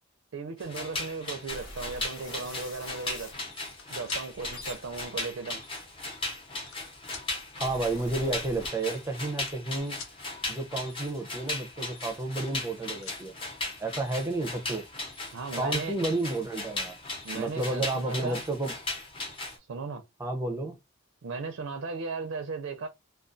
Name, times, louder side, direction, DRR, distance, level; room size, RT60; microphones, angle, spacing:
voice 1, 0.3-3.3 3.9-5.6 15.3-16.0 17.2-18.4 19.7-20.0 21.2-22.9, right 4 dB, 85° right, 0.4 m, -36 dB
sound 1, 0.6-19.6, left 2 dB, 25° left, 0.7 m, -37 dB
sound 2, 1.5-3.4 4.1-6.5 7.2-9.2 9.5-9.8, left 1 dB, 70° left, 1.2 m, -46 dB
sound 3, 3.6-4.2 5.2-5.3 6.1-6.8 7.1-7.3 8.4-8.5 8.7-8.9 9.3-10.2 12.0-12.8 13.0-13.2 14.7-14.8 15.1-15.5, left 5 dB, 90° left, 0.7 m, -46 dB
voice 2, 7.6-10.0 10.5-13.3 13.8-14.9 15.5-17.0 17.3-18.8 20.2-20.8, right 2 dB, 15° right, 0.4 m, -31 dB
2.3 x 2.2 x 2.5 m
head